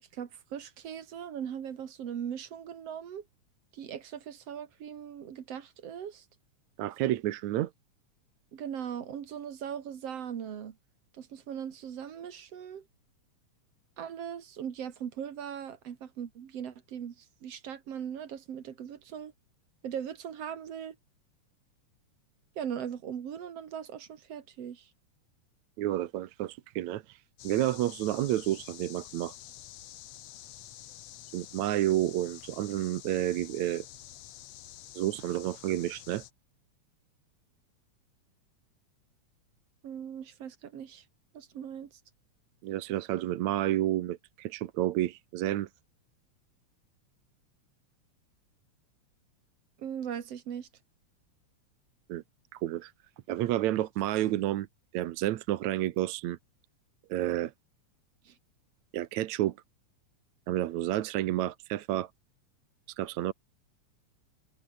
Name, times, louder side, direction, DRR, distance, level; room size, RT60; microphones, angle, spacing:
voice 1, 0.1-3.2 3.7-6.2 8.5-10.8 11.1-12.8 14.0-19.3 19.8-21.0 22.6-24.9 39.8-41.0 41.3-41.9 49.8-50.7 58.2-58.4, right 8 dB, 55° right, 2.7 m, -39 dB
voice 2, 6.8-7.7 25.8-27.2 27.4-29.3 31.3-33.9 35.0-36.2 42.6-45.7 52.1-52.2 52.5-52.9 53.3-54.7 54.9-56.4 57.1-57.5 58.9-59.6 60.5-62.1 63.0-63.3, right 14 dB, 75° right, 2.2 m, -30 dB
sound 1, 27.4-36.3, left 13 dB, 65° left, 2.1 m, -48 dB
omnidirectional pair, 3.4 m